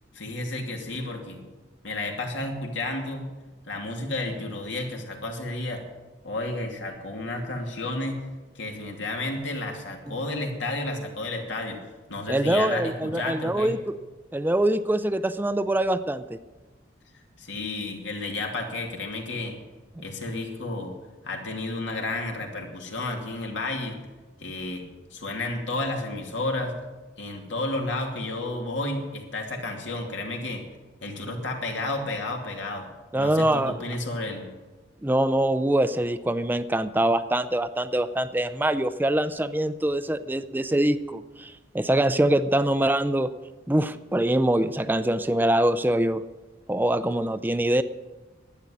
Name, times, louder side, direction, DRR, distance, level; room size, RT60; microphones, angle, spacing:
voice 1, 0.1-1.4 1.8-3.2 3.7-5.8 6.2-8.2 8.5-11.8 12.1-13.7 17.4-19.6 20.0-21.0 21.2-24.0 24.4-24.8 25.1-26.7 27.2-30.6 31.0-32.9 33.2-34.5, left 2 dB, 85° left, 1 dB, 2.7 m, -31 dB
voice 2, 12.3-14.0 14.3-16.4 33.1-33.7 35.0-43.3 43.7-46.2 46.7-47.8, right 1 dB, 10° right, 12 dB, 0.4 m, -24 dB
11.5 x 9.7 x 9.8 m, 1.2 s
head